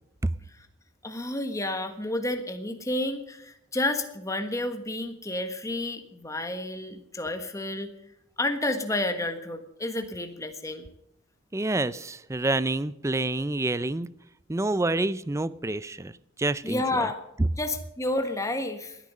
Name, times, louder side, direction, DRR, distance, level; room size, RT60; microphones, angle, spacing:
voice 1, 1.0-7.9 8.4-10.9 16.6-17.2 17.6-19.0, left 1 dB, 15° left, 7 dB, 1.4 m, -30 dB
voice 2, 11.5-14.1 14.5-16.1 16.4-16.8, right 2 dB, 15° right, 17 dB, 0.5 m, -27 dB
19.0 x 10.0 x 5.4 m, 0.81 s
head